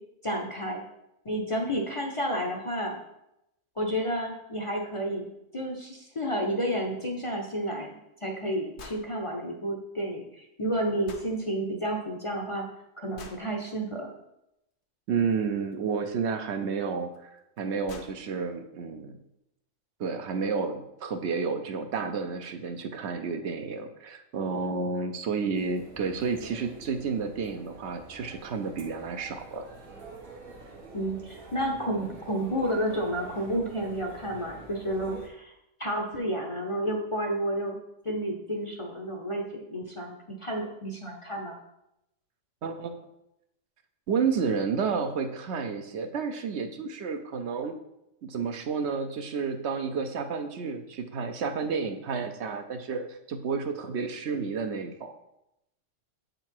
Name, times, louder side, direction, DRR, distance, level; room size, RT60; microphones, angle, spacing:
voice 1, 0.2-0.8 1.2-3.0 3.8-7.9 8.2-12.7 13.0-14.1 30.9-35.5 35.8-37.8 38.0-41.6, equal, 35° left, 0 dB, 0.6 m, -31 dB
sound 1, 8.8-9.1 11.1-11.3 13.2-13.5 15.7-15.8 17.1-17.2 17.6-17.7 17.9-18.2, left 4 dB, 65° left, 1.0 m, -45 dB
voice 2, 15.1-19.2 20.0-29.7 42.6-43.1 44.1-47.7 48.2-55.1, right 5 dB, 65° right, 6 dB, 0.9 m, -31 dB
sound 2, 25.5-35.3, right 3 dB, 85° right, 1.5 m, -47 dB
7.3 x 3.9 x 4.5 m, 0.84 s
omnidirectional pair, 1.3 m